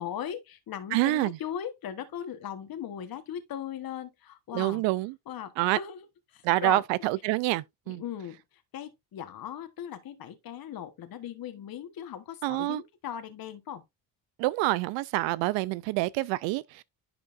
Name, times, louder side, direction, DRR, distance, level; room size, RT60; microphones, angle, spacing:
voice 1, 0.0-4.8 5.3-6.0 6.3-6.8 7.9-13.8, left 9 dB, 50° left, 1.2 m, -38 dB
voice 2, 0.9-1.4 4.5-5.2 5.6-5.8 6.4-8.0 12.4-12.8 14.4-16.8, right 19 dB, 90° right, 0.6 m, -27 dB
10.5 x 5.1 x 2.5 m
cardioid pair, 85°, 44 cm